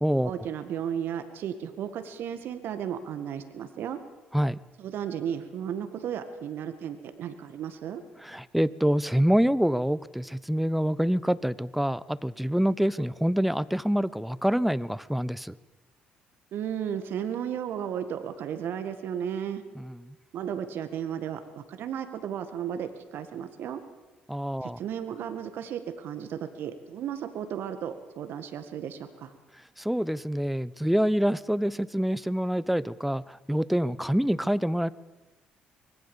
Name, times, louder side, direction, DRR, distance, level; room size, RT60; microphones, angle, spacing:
voice 1, 0.2-4.0 4.8-8.0 16.5-19.6 20.3-23.8 24.6-29.3, right 9 dB, 60° right, 9 dB, 1.8 m, -34 dB
voice 2, 8.2-15.5 19.8-20.1 24.3-24.8 29.8-34.9, equal, ahead, 18 dB, 1.0 m, -26 dB
24.5 x 21.0 x 7.2 m, 1.2 s
hypercardioid pair, 50°, 4 cm